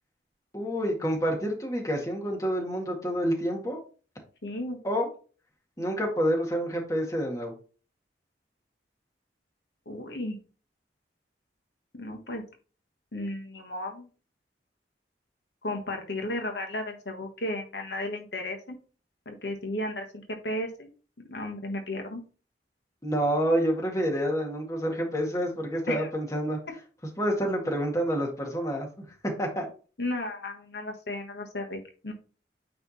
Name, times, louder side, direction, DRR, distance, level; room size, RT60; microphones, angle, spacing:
voice 1, 0.5-3.8 4.8-5.1 5.8-7.5 23.0-26.6 27.2-28.9 29.2-29.7, equal, 20° left, 0 dB, 1.8 m, -28 dB
voice 2, 4.4-4.8 9.8-10.4 11.9-12.4 13.1-14.1 15.6-18.8 19.2-20.0 20.4-20.9 21.3-22.2 25.9-26.1 30.0-32.1, left 1 dB, 75° left, 3 dB, 1.4 m, -34 dB
9.2 x 3.4 x 4.3 m, 0.37 s
head